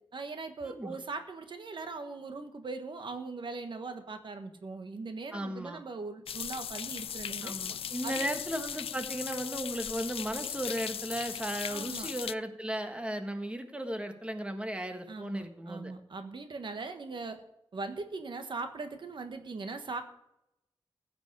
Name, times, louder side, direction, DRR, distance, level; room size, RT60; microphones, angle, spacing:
voice 1, 0.1-7.5 8.0-8.4 11.7-12.1 15.1-17.4 17.7-20.0, right 3 dB, 60° right, 7 dB, 1.4 m, -40 dB
voice 2, 0.6-1.0 5.3-5.8 7.4-15.9, right 1 dB, 10° right, 6 dB, 1.4 m, -36 dB
sound 1, 6.3-12.3, left 8 dB, 85° left, 0.4 m, -38 dB
15.5 x 5.3 x 8.3 m, 0.82 s
wide cardioid pair, 110°, 9 cm